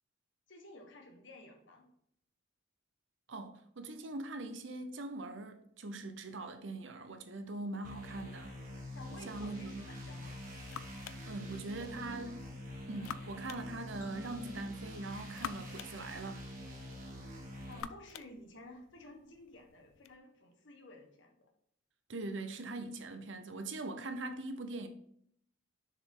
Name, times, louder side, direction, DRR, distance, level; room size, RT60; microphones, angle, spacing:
voice 1, 0.5-1.9 8.9-10.5 11.7-12.1 17.7-21.5, left 1 dB, 60° left, 1.4 m, -53 dB
voice 2, 3.3-8.5 9.3-9.7 11.3-12.5 12.9-16.5 22.1-24.9, right 2 dB, 65° right, 0.8 m, -42 dB
sound 1, 7.8-17.8, left 1 dB, 40° right, 1.6 m, -46 dB
sound 2, 10.0-20.2, left 8 dB, 90° left, 0.4 m, -51 dB
sound 3, 14.0-16.7, left 1 dB, 10° left, 1.1 m, -54 dB
6.7 x 5.1 x 3.8 m
head